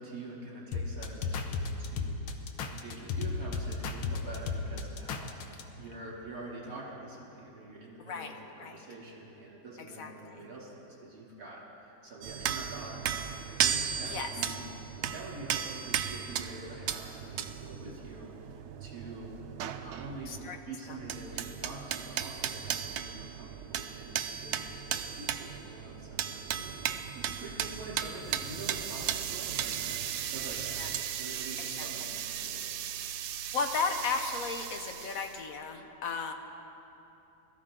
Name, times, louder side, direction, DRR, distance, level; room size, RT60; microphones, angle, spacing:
voice 1, 0.0-14.7 15.1-19.4 19.7-20.3 20.7-32.7, right 2 dB, 55° right, -4 dB, 3.3 m, -46 dB
sound 1, 0.7-5.6, left 4 dB, 80° left, 1.6 m, -34 dB
voice 2, 8.1-8.8 9.8-10.4 14.0-14.3 20.3-20.6 20.9-21.0 30.8-30.9 31.8-32.1 33.5-36.3, left 4 dB, 55° left, 5 dB, 1.2 m, -35 dB
sound 2, 12.2-20.6 20.8-31.0, right 9 dB, 70° right, 1.0 m, -36 dB
sound 3, 28.2-35.4, right 10 dB, 90° right, 1.3 m, -38 dB
21.5 x 14.0 x 3.8 m, 3.0 s
omnidirectional pair, 2.0 m